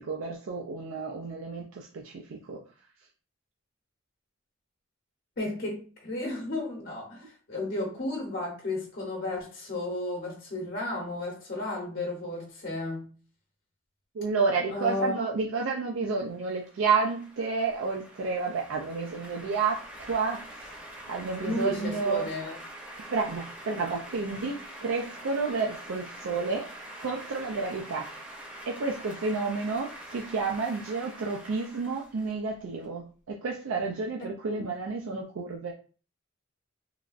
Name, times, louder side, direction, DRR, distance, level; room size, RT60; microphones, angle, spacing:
voice 1, 0.0-2.6 14.2-20.5 21.1-22.3 23.1-26.7 27.0-28.1 28.7-35.7, right 4 dB, 85° right, 0.4 m, -30 dB
voice 2, 5.4-13.1 14.7-15.3 21.4-22.6 34.5-34.7, left 2 dB, 50° left, 0.8 m, -33 dB
sound 1, 16.2-32.9, right 1 dB, 10° right, 0.7 m, -45 dB
3.2 x 2.4 x 2.4 m
head